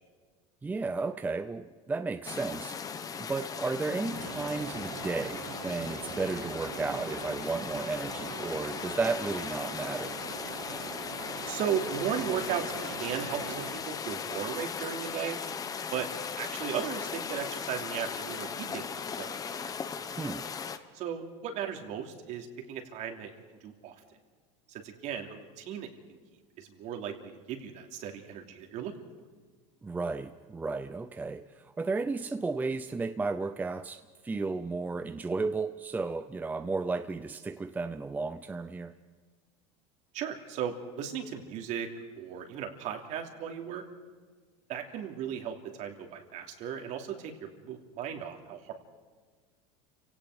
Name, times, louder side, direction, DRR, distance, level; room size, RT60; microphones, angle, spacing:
voice 1, 0.6-2.8 3.2-10.2 20.2-20.5 29.8-38.9, right 3 dB, 10° right, 10 dB, 0.6 m, -33 dB
sound 1, 2.2-20.8, left 6 dB, 25° left, 1.1 m, -38 dB
sound 2, 4.1-13.7, right 8 dB, 70° right, 2.3 m, -43 dB
voice 2, 11.4-15.4 15.9-16.1 16.4-19.4 20.9-23.3 23.6-23.9 24.7-26.2 26.6-28.9 40.1-41.9 42.2-43.8 44.7-48.7, right 8 dB, 50° right, 4 dB, 3.0 m, -36 dB
30.0 x 17.5 x 5.0 m, 1.5 s
supercardioid pair, 140°, 16 cm